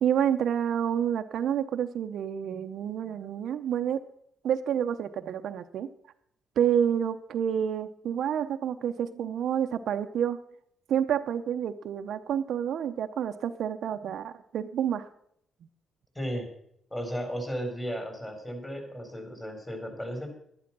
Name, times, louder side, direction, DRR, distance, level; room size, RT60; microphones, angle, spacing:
voice 1, 0.0-4.0 4.4-5.9 6.6-10.4 10.9-15.1, right 9 dB, 70° right, 8 dB, 0.8 m, -28 dB
voice 2, 16.1-16.5 16.9-20.3, equal, 15° left, 5 dB, 4.4 m, -35 dB
11.5 x 11.5 x 6.1 m, 0.70 s
cardioid pair, 90°, 0 cm